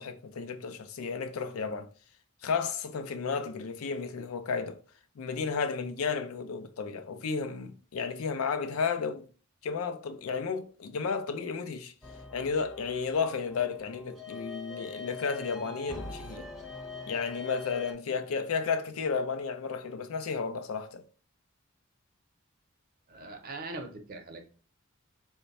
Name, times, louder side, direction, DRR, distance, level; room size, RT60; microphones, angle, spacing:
voice 1, 0.0-1.9 2.4-4.8 5.2-9.3 9.6-11.9 12.3-16.5 17.1-21.0, left 5 dB, 85° left, 0.4 m, -33 dB
sound 1, 12.0-17.9, left 3 dB, ahead, 0.5 m, -43 dB
voice 2, 23.1-24.5, right 2 dB, 45° right, 0.6 m, -41 dB
3.1 x 2.2 x 4.0 m
head